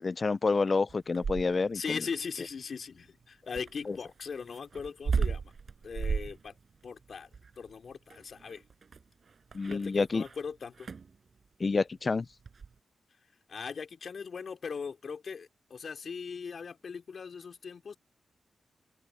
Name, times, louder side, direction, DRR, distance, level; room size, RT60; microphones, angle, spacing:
voice 1, 0.0-2.0 3.9-4.0 9.5-10.2 11.6-12.3, left 4 dB, 45° left, 0.7 m, -28 dB
sound 1, 0.9-1.8 3.6-10.4 10.7-11.2 12.5-12.7, right 5 dB, 60° right, 6.8 m, -35 dB
voice 2, 1.7-5.5 5.8-6.6 6.8-7.3 7.6-8.6 9.6-10.9 13.5-18.0, left 5 dB, 65° left, 3.0 m, -39 dB
cardioid pair, 65°, 0 cm